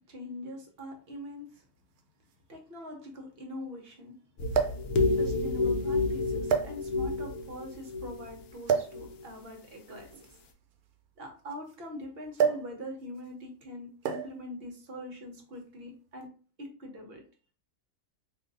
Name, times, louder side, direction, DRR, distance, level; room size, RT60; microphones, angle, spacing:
voice 1, 0.1-1.6 2.5-4.1 5.1-10.2 11.2-16.3 16.6-17.2, left 1 dB, 50° right, 2 dB, 0.8 m, -43 dB
sound 1, 0.8-0.9 2.0-2.1 2.3-2.4 4.5-4.9 5.7-5.9 6.5-7.2 8.7-9.0 10.1-11.8 12.4-12.7 13.0-13.3 14.0-14.4 15.4-15.6, right 7 dB, 90° right, 1.1 m, -29 dB
sound 2, 4.4-8.4 8.9-9.2, left 3 dB, 65° left, 0.8 m, -30 dB
2.6 x 2.5 x 3.9 m, 0.39 s
omnidirectional pair, 1.6 m